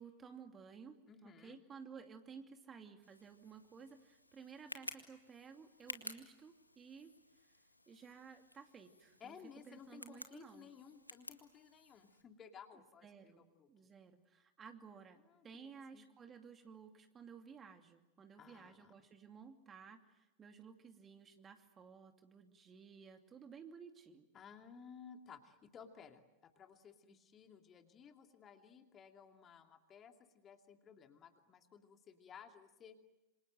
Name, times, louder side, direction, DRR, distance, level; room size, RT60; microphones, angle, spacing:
voice 1, 0.0-7.1 7.4-7.5 7.9-9.4 9.7-10.7 13.0-15.2 15.4-24.3, right 6 dB, 20° right, 6 dB, 2.6 m, -55 dB
voice 2, 1.1-1.6 9.2-13.7 15.2-15.5 15.9-16.0 18.4-18.9 24.3-33.0, left 7 dB, 25° left, 5 dB, 2.6 m, -57 dB
Tick, 3.0-12.2, left 1 dB, 85° left, 2.0 m, -54 dB
27.5 x 27.0 x 7.8 m, 0.98 s
figure-of-eight pair, 90°, 0 cm